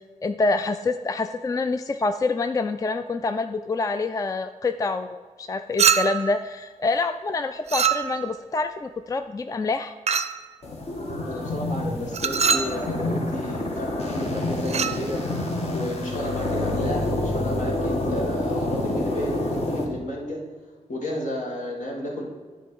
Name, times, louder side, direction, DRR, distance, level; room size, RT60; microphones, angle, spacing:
voice 1, 0.0-9.9, left 3 dB, 25° left, 9 dB, 0.3 m, -26 dB
Chink clink, 5.8-6.4 7.7-8.4 10.1-10.4 12.1-12.8 14.7-15.0, right 7 dB, 55° right, 0.5 m, -23 dB
sound 1, 10.6-19.8, left 1 dB, 50° left, 1.4 m, -28 dB
voice 2, 11.2-15.2 15.7-20.4 20.9-22.3, left 1 dB, 70° left, -1 dB, 1.9 m, -32 dB
10.0 x 3.8 x 5.3 m, 1.5 s
cardioid pair, 80°, 13 cm